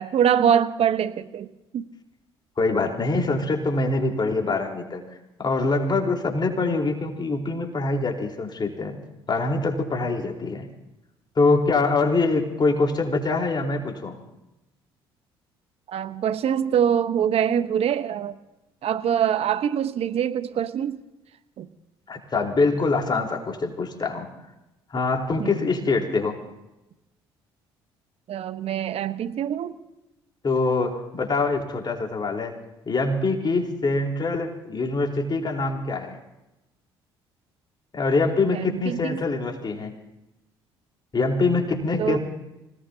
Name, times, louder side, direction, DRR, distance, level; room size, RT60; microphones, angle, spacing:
voice 1, 0.0-1.5 1.7-1.9 15.9-18.3 18.8-21.0 21.6-21.7 25.4-25.6 28.3-29.7 38.5-39.2 42.0-42.2, right 9 dB, 55° right, 11 dB, 1.1 m, -24 dB
voice 2, 2.6-5.0 5.4-9.0 9.3-10.7 11.4-14.1 22.1-24.3 24.9-26.4 30.4-32.5 32.9-36.2 37.9-39.9 41.1-42.2, left 3 dB, 35° left, 1 dB, 4.2 m, -24 dB
26.5 x 19.0 x 2.8 m, 0.95 s
hypercardioid pair, 55°, 12 cm